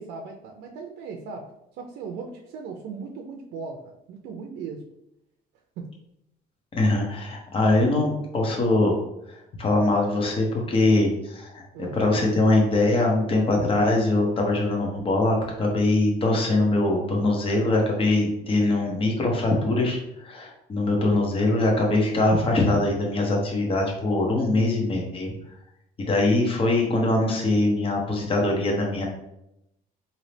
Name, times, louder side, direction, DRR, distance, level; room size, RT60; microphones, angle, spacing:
voice 1, 0.0-1.5 1.8-4.8 5.8-5.9 11.7-12.0, right 5 dB, 80° right, 1 dB, 0.5 m, -37 dB
voice 2, 6.8-9.0 9.6-25.3 26.0-29.1, left 2 dB, 35° left, 0 dB, 1.0 m, -22 dB
3.9 x 2.8 x 3.3 m, 0.84 s
cardioid pair, 110°, 17 cm